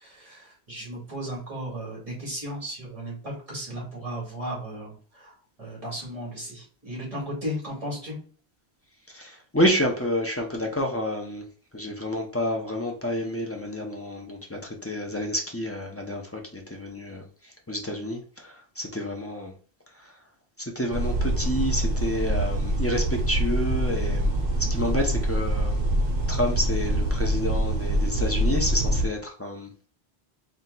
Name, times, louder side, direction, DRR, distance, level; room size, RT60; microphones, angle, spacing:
voice 1, 0.0-5.3 5.6-8.2, equal, 35° right, 2.0 m, -35 dB
voice 2, 9.1-11.5 11.7-17.3 17.7-19.5 20.0-20.1 20.6-25.8 26.3-29.9, left 1 dB, 20° left, 0.4 m, -29 dB
sound 1, 20.9-29.1, right 1 dB, 65° right, 1.1 m, -25 dB
4.3 x 2.2 x 3.8 m
omnidirectional pair, 1.1 m